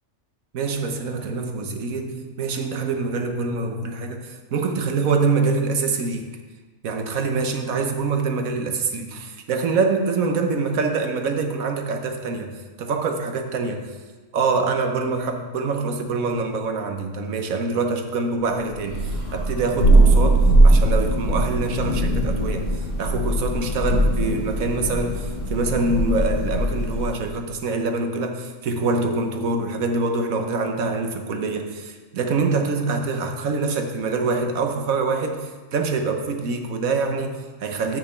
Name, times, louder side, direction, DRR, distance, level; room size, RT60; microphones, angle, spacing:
voice 1, 0.5-6.3 6.8-14.0 14.3-38.0, right 4 dB, 70° right, 5 dB, 1.3 m, -25 dB
Thunder, 18.8-27.2, right 1 dB, 45° left, 2.1 m, -20 dB
6.4 x 6.3 x 7.0 m, 1.3 s
omnidirectional pair, 1.5 m